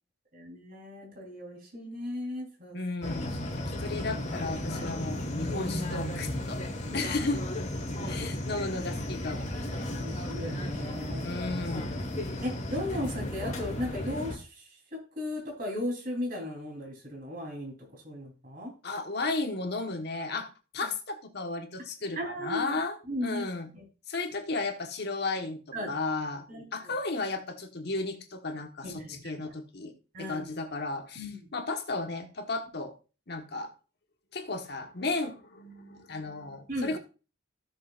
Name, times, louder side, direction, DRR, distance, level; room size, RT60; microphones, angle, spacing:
voice 1, 0.3-2.8 6.9-7.1 7.9-8.3 9.7-11.3 12.4-14.7 15.2-17.7 18.0-18.7 22.2-22.7 23.1-23.4 23.7-23.8 25.7-25.9 26.5-26.9 28.8-29.5 30.1-30.5 31.2-31.5 36.7-37.0, left 1 dB, 45° right, 3.7 m, -36 dB
voice 2, 2.7-6.6 6.9-7.4 8.1-9.6 11.2-12.0 18.8-20.5 20.7-23.7 24.1-26.5 26.7-29.9 30.2-32.9 33.3-33.7 34.3-37.0, left 3 dB, 50° left, 1.3 m, -34 dB
sound 1, 3.0-14.4, left 1 dB, 35° left, 1.6 m, -34 dB
15.5 x 6.6 x 2.5 m
head